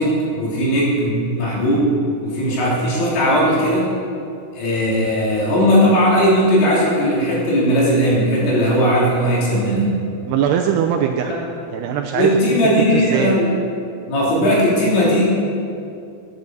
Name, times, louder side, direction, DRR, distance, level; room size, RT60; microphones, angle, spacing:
voice 1, 0.0-1.9 2.2-3.9 4.5-9.9 12.1-13.5 14.1-15.3, equal, 75° left, -6 dB, 5.7 m, -17 dB
voice 2, 10.3-11.4 11.7-13.3, right 8 dB, 85° right, 3 dB, 2.4 m, -21 dB
11.0 x 10.5 x 6.7 m, 2.5 s
omnidirectional pair, 5.3 m